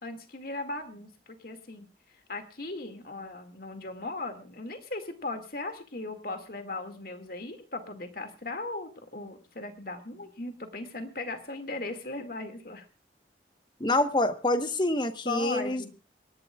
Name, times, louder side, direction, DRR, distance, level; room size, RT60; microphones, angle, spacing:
voice 1, 0.0-1.9 2.3-12.9 15.3-15.9, left 2 dB, 55° left, 7 dB, 2.2 m, -38 dB
voice 2, 13.8-15.8, left 1 dB, 25° left, 8 dB, 1.2 m, -26 dB
28.0 x 11.5 x 2.4 m, 0.32 s
head